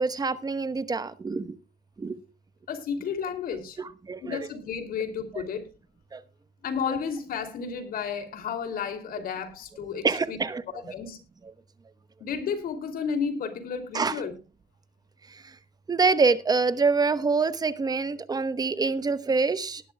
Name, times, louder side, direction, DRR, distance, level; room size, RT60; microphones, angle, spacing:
voice 1, 0.0-1.6 2.0-2.2 3.8-4.4 5.3-5.4 6.1-6.2 10.0-10.9 13.9-14.2 15.3-15.4 15.9-19.8, right 4 dB, 25° right, 14 dB, 1.0 m, -26 dB
voice 2, 2.7-3.8 4.2-5.6 6.6-10.4 10.7-11.2 12.2-14.3, left 6 dB, 60° left, 7 dB, 2.8 m, -32 dB
19.0 x 11.0 x 2.3 m, 0.32 s
cardioid pair, 110°, 17 cm